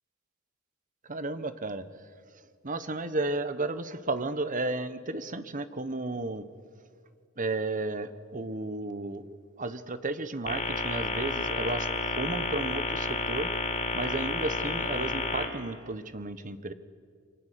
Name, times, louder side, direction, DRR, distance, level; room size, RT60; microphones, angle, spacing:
voice 1, 1.1-1.8 2.6-6.4 7.4-13.5 13.9-16.7, right 2 dB, 40° right, 12 dB, 1.4 m, -33 dB
sound 1, 10.5-15.4, left 3 dB, 35° left, 4.2 m, -31 dB
29.0 x 24.5 x 8.5 m, 2.1 s
head